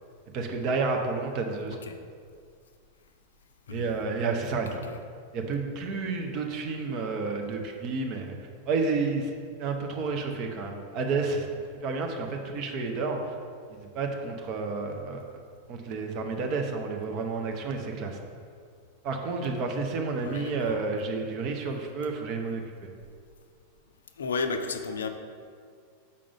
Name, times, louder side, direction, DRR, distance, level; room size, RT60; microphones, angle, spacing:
voice 1, 0.3-1.8 3.7-4.8 5.3-8.4 8.6-9.3 9.6-11.5 11.8-13.3 13.7-15.4 15.7-18.2 19.0-22.6, right 4 dB, 40° right, 3 dB, 0.7 m, -30 dB
voice 2, 3.7-4.0 4.7-5.0 20.2-20.8 24.1-25.1, left 4 dB, 65° left, 7 dB, 0.4 m, -33 dB
6.8 x 5.1 x 3.5 m, 2.2 s
figure-of-eight pair, 90°, 0 cm